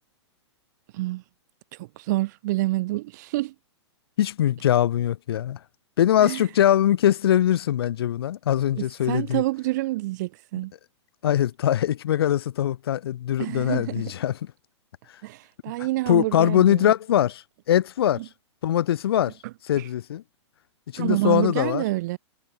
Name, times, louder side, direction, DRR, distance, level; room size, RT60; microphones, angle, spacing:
voice 1, 1.8-3.5 6.2-6.4 8.7-10.7 13.4-14.1 15.2-16.9 18.2-18.3 19.7-19.9 21.0-22.2, right 19 dB, 40° right, 0.4 m, -28 dB
voice 2, 4.2-5.6 6.0-9.4 11.2-14.4 16.1-17.4 17.7-18.2 18.6-19.3 19.7-20.2 20.9-21.8, left 11 dB, 55° left, 0.4 m, -22 dB
figure-of-eight pair, 105°, 15 cm